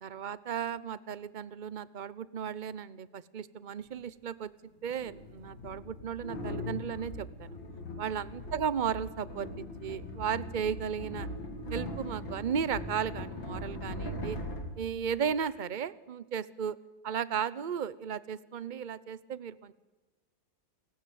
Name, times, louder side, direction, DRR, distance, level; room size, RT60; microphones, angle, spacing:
voice 1, 0.0-4.5 4.8-7.6 8.0-11.3 11.7-14.4 14.8-16.8 17.0-19.7, right 7 dB, 50° right, 18 dB, 0.5 m, -35 dB
sound 1, 3.8-3.9 4.9-15.5, left 1 dB, 90° left, 3.9 m, -40 dB
28.5 x 16.0 x 9.4 m, 1.2 s
omnidirectional pair, 2.0 m